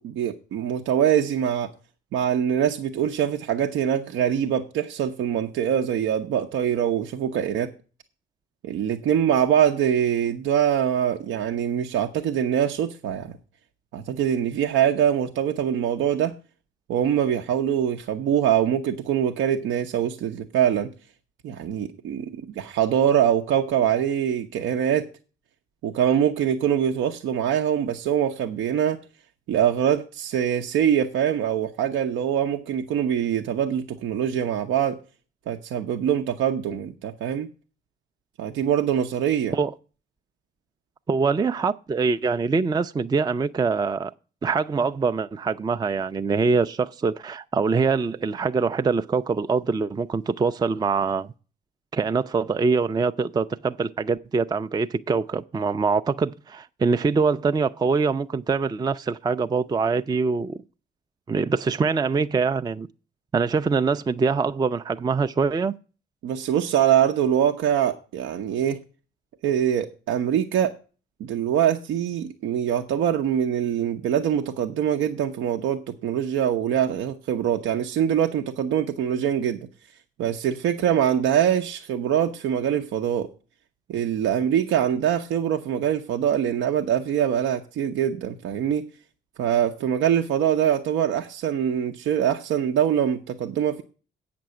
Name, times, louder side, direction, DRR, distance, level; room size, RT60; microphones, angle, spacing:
voice 1, 0.0-1.7 2.1-7.7 8.6-13.4 13.9-16.4 16.9-20.9 21.4-25.1 25.8-29.0 29.5-35.0 35.5-37.5 38.4-39.6 66.2-68.8 69.4-70.7 71.2-79.6 80.2-83.3 83.9-88.8 89.4-93.8, right 9 dB, 85° right, 0.7 m, -23 dB
voice 2, 41.1-44.1 44.4-51.3 51.9-60.6 61.3-62.9 63.3-65.7, right 4 dB, 20° right, 0.4 m, -24 dB
8.5 x 6.0 x 7.7 m
cardioid pair, 90°, 20 cm